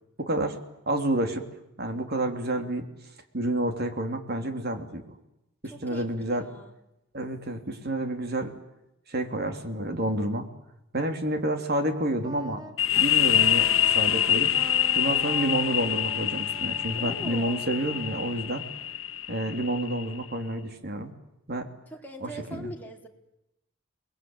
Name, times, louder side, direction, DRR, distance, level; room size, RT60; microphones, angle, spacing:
voice 1, 0.2-0.6 0.9-1.5 1.8-2.9 3.3-5.2 5.6-6.5 7.1-8.5 9.1-10.5 10.9-12.6 13.0-14.5 14.9-18.6 19.3-21.1 21.5-21.7 22.2-22.7, right 1 dB, 55° right, 6 dB, 3.4 m, -29 dB
voice 2, 5.7-6.7 17.0-17.7 21.9-23.1, equal, 10° left, 0 dB, 4.2 m, -42 dB
Wind instrument woodwind instrument, 12.2-19.1, right 2 dB, 20° right, 2.0 m, -44 dB
sound 1, 12.8-20.2, left 11 dB, 90° left, 1.1 m, -26 dB
29.5 x 21.5 x 9.1 m, 0.88 s
head